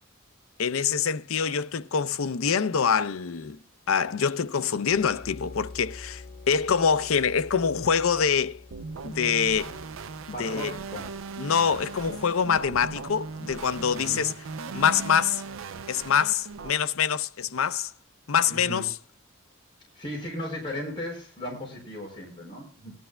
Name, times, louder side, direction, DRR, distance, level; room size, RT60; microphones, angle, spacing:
voice 1, 0.6-3.6 3.9-8.6 9.0-9.8 10.4-10.7 11.4-14.3 14.7-15.4 15.9-17.9 18.3-18.9, left 6 dB, 80° left, 0.6 m, -25 dB
sound 1, 4.9-12.4, left 3 dB, 40° left, 2.1 m, -47 dB
sound 2, 8.7-16.7, right 4 dB, 75° right, 0.5 m, -38 dB
voice 2, 10.3-11.1 14.0-14.3 18.5-18.9 19.9-22.9, equal, 25° left, 4.6 m, -36 dB
19.5 x 12.0 x 2.2 m
head